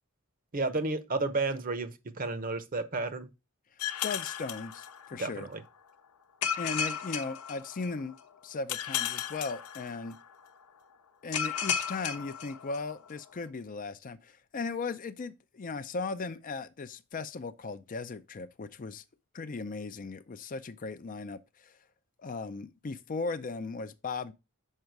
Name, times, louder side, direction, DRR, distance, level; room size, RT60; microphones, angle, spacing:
voice 1, 0.5-3.3 5.2-5.6, right 3 dB, 40° right, 0.8 m, -32 dB
sound 1, 3.8-5.4 6.4-8.1 8.7-10.3 11.3-13.1, left 8 dB, 85° left, 0.8 m, -34 dB
voice 2, 4.0-5.5 6.6-8.1 8.4-10.2 11.2-19.0 19.3-21.8 22.2-24.3, left 4 dB, 35° left, 0.4 m, -37 dB
6.5 x 4.8 x 4.6 m
head